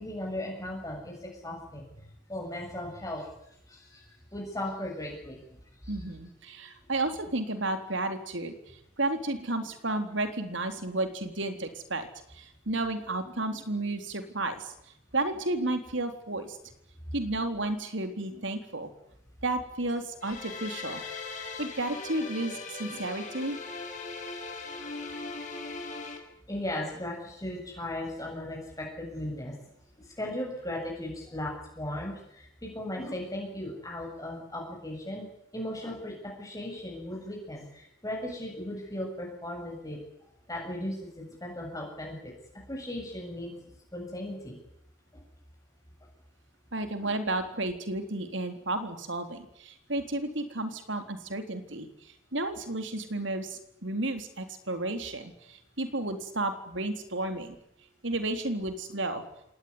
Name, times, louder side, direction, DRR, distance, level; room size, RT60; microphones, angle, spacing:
voice 1, 0.0-1.9 2.3-3.3 3.7-5.4 5.8-6.0 26.5-29.5 30.0-35.3 35.5-40.0 40.5-42.3 42.7-43.5 43.9-44.6, left 1 dB, 15° left, -1 dB, 7.3 m, -37 dB
voice 2, 5.9-8.5 9.0-12.1 12.3-14.7 15.1-16.6 17.1-18.9 19.4-21.0 21.6-23.6 46.7-51.9 52.3-57.6 58.0-59.2, right 2 dB, 65° right, 7 dB, 3.8 m, -32 dB
sound 1, 20.2-26.2, left 4 dB, 40° left, 6.5 m, -39 dB
26.0 x 19.0 x 9.8 m, 0.79 s
head